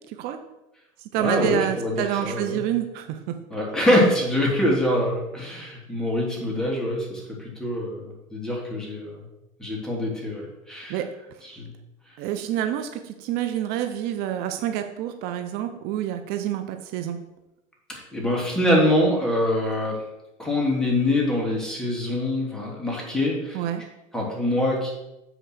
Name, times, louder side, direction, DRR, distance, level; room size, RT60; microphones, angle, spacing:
voice 1, 0.1-0.4 1.1-3.3 10.9-11.1 12.2-17.2 23.5-23.8, right 11 dB, 70° right, 7 dB, 0.8 m, -28 dB
voice 2, 1.2-2.6 3.5-9.2 9.6-11.0 11.4-11.6 17.9-20.0 20.4-23.6 24.1-24.9, left 1 dB, 5° left, -3 dB, 3.2 m, -24 dB
8.1 x 4.5 x 6.3 m, 0.94 s
supercardioid pair, 105°, 17 cm